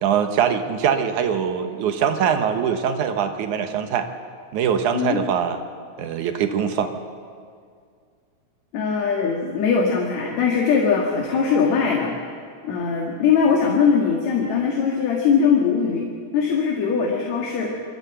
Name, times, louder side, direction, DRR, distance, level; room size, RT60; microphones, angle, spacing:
voice 1, 0.0-4.1 4.5-5.6 6.0-6.9, right 8 dB, 80° right, 7 dB, 2.6 m, -22 dB
voice 2, 8.7-12.1 12.6-16.1 16.3-17.7, left 6 dB, 65° left, 0 dB, 3.0 m, -21 dB
25.0 x 13.0 x 8.0 m, 2.2 s
omnidirectional pair, 3.4 m